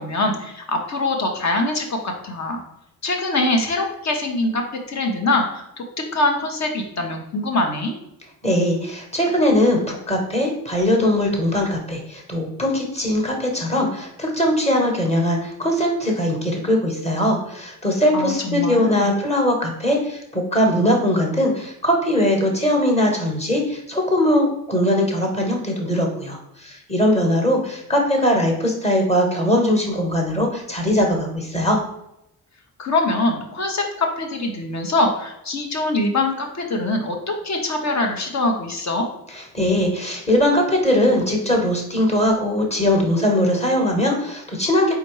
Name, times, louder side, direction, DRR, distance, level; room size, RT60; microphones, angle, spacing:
voice 1, 0.0-2.6 3.0-5.8 6.1-8.0 18.1-19.1 32.8-39.1, left 2 dB, 45° left, 3 dB, 1.1 m, -23 dB
voice 2, 8.4-31.8 39.3-44.9, left 1 dB, 15° left, 1 dB, 1.4 m, -20 dB
4.2 x 3.7 x 3.2 m, 0.83 s
supercardioid pair, 65°, 38 cm